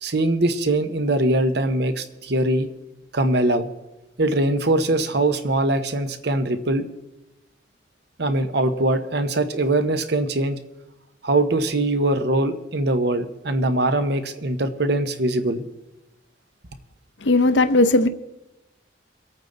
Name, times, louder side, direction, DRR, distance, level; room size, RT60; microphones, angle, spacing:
voice 1, 0.0-2.7 3.1-3.7 4.2-6.9 8.2-10.6 11.2-15.6, right 2 dB, 60° right, 1.0 m, -22 dB
voice 2, 17.2-18.1, left 2 dB, 75° left, 0.7 m, -17 dB
24.0 x 8.9 x 4.0 m
head